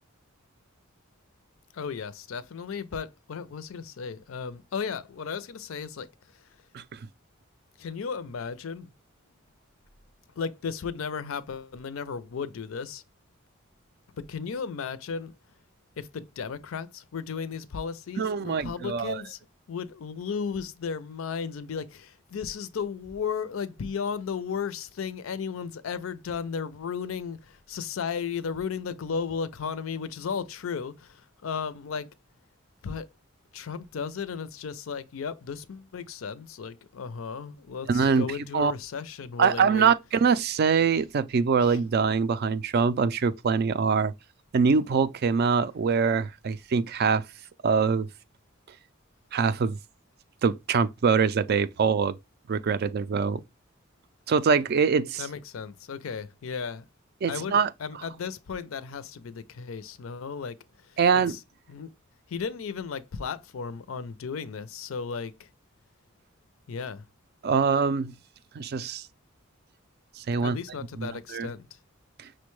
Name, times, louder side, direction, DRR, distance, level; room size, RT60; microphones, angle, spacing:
voice 1, 1.7-6.1 7.8-8.9 10.4-13.0 14.2-15.3 16.0-19.4 19.7-32.1 32.8-33.1 33.5-39.9 41.6-41.8 55.2-56.8 57.2-60.6 60.9-61.0 61.3-61.4 61.7-61.9 62.3-65.5 66.7-67.0 70.4-71.7, left 6 dB, 75° left, 0.4 m, -35 dB
voice 2, 18.2-19.2 37.9-38.2 38.5-38.7 39.4-44.1 44.5-47.2 47.6-48.1 49.3-49.8 50.4-52.2 52.5-53.4 54.3-55.3 57.2-57.7 61.0-61.4 67.4-68.1 68.5-69.1 70.2-70.6 71.0-71.5 72.2-72.3, right 5 dB, 50° right, 0.3 m, -24 dB
5.9 x 2.2 x 3.1 m
head